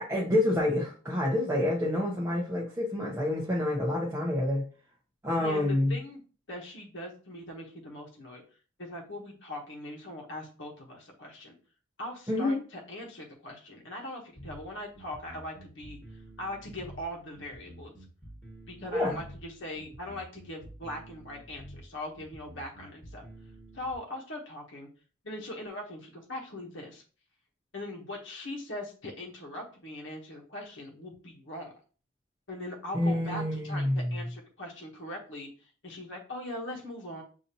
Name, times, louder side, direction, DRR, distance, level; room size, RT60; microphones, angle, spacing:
voice 1, 0.1-4.6 5.2-6.0 12.3-12.6 18.9-19.2 32.9-34.1, left 1 dB, 15° right, -4 dB, 0.8 m, -28 dB
voice 2, 5.4-6.2 6.5-8.4 8.8-11.5 12.0-18.0 18.7-23.2 23.7-24.9 25.2-27.0 27.7-31.7 32.5-37.2, left 1 dB, 65° left, 0 dB, 1.0 m, -41 dB
sound 1, 14.4-24.0, right 1 dB, 5° left, 1.4 m, -49 dB
6.6 x 2.7 x 2.8 m, 0.38 s
head